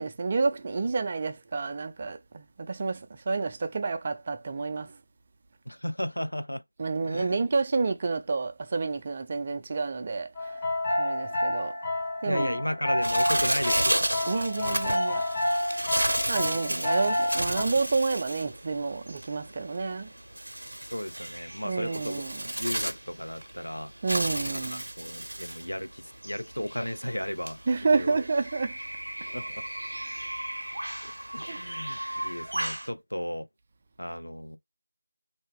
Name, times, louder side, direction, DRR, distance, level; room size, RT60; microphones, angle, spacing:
voice 1, 0.0-4.9 6.8-10.5 11.0-11.7 12.2-12.6 14.3-15.2 16.3-20.1 21.6-22.4 24.0-24.8 27.7-28.8 31.5-31.6 32.1-32.2, right 4 dB, 25° right, 0.3 m, -29 dB
voice 2, 5.7-6.6 7.0-7.4 12.3-14.1 16.7-16.8 20.9-22.2 22.6-23.9 24.7-27.6 27.9-28.2 29.3-29.5 31.0-33.5 34.0-34.6, equal, 85° left, 0.5 m, -34 dB
sound 1, 10.3-17.6, left 1 dB, 15° left, 0.7 m, -29 dB
Bird, 13.0-32.9, right 1 dB, 70° right, 0.6 m, -33 dB
2.6 x 2.2 x 3.5 m
figure-of-eight pair, 165°, 0 cm